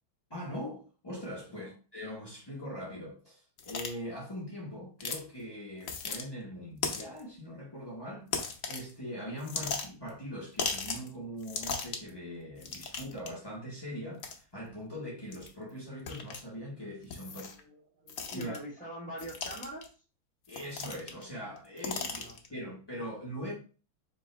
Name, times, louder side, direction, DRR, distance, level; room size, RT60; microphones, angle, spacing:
voice 1, 0.3-8.3 8.7-17.4 18.3-18.6 20.5-22.2 22.5-23.5, equal, 30° left, 0.4 m, -41 dB
sound 1, 3.6-3.9 5.0-5.2 5.8-6.2 6.8-7.2 8.3-8.9 9.4-10.1 10.6-11.1 11.4-12.1 12.6-13.3 14.2-14.4 15.3-15.5 16.1-16.4 17.1-17.6 18.1-18.6 19.2-19.9 20.5-21.2 21.6-22.5, left 5 dB, 80° left, 0.7 m, -36 dB
voice 2, 17.2-19.9 21.9-22.6, equal, 5° left, 1.0 m, -45 dB
3.6 x 2.9 x 4.4 m
omnidirectional pair, 2.3 m